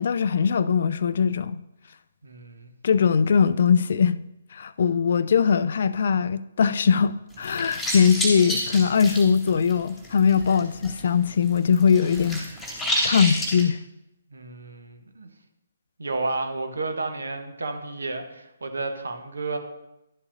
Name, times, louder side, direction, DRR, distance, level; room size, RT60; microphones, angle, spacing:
voice 1, 0.0-1.6 2.8-4.2 4.5-12.5 13.0-13.8, left 6 dB, 50° left, 0.3 m, -21 dB
voice 2, 2.2-2.7 14.3-15.3 16.0-19.6, right 3 dB, 70° right, 1.1 m, -31 dB
sound 1, 7.3-11.0 11.3-13.6, equal, ahead, 2.1 m, -29 dB
11.5 x 7.1 x 2.6 m
figure-of-eight pair, 135°, 0 cm